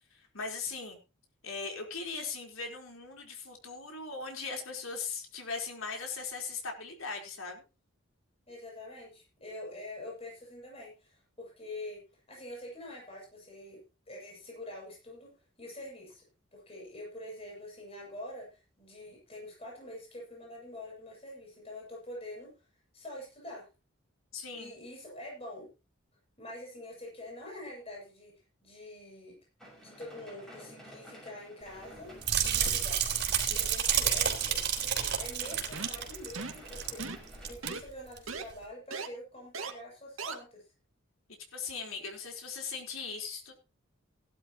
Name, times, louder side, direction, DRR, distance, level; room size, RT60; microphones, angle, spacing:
voice 1, 0.1-1.0 1.4-7.6 24.3-24.7 33.4-33.7 41.5-43.5, left 4 dB, 80° left, 2 dB, 4.3 m, -39 dB
voice 2, 8.5-16.2 16.5-22.5 22.9-23.7 24.5-25.7 26.4-28.3 28.6-29.4 29.8-33.1 33.5-37.1 37.4-40.6 42.0-42.1, left 1 dB, 30° left, -2 dB, 7.6 m, -46 dB
sound 1, 29.6-37.5, equal, 5° left, 6.4 m, -52 dB
sound 2, 32.2-37.1 37.3-37.7 38.2-38.3, right 8 dB, 55° right, 3.9 m, -30 dB
sound 3, 35.7-36.0 36.4-36.6 37.0-37.3 37.6-37.8 38.3-38.4 38.9-39.1 39.5-39.7 40.2-40.3, right 4 dB, 85° right, 1.9 m, -38 dB
17.5 x 11.5 x 3.0 m, 0.30 s
head